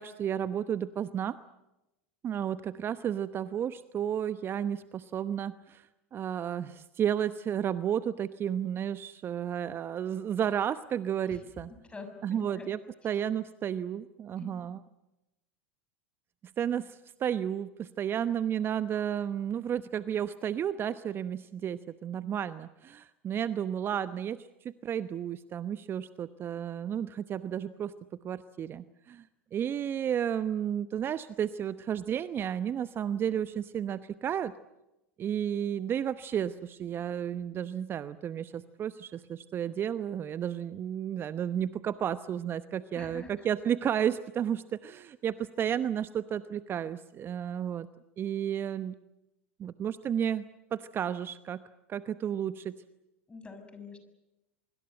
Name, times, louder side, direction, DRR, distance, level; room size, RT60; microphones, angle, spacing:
voice 1, 0.0-1.4 2.2-11.7 12.2-12.8 13.0-14.8 16.6-27.9 28.2-34.5 35.2-47.9 48.2-48.9 49.6-50.4 50.7-51.6 51.9-52.7, right 9 dB, 35° right, 14 dB, 0.9 m, -32 dB
voice 2, 11.9-12.7 14.4-14.7 42.9-43.5 53.3-54.0, left 4 dB, 15° left, 7 dB, 6.4 m, -46 dB
24.5 x 24.0 x 7.9 m, 0.93 s
hypercardioid pair, 85°, 7 cm